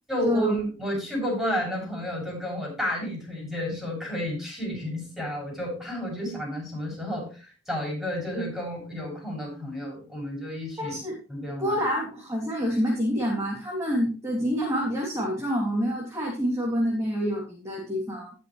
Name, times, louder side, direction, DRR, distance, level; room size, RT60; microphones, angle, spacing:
voice 1, 0.1-11.0 11.3-11.7, equal, ahead, -4 dB, 6.7 m, -31 dB
voice 2, 10.8-11.2 11.6-18.3, equal, 15° right, -4 dB, 3.0 m, -27 dB
19.0 x 6.4 x 3.2 m, 0.35 s
head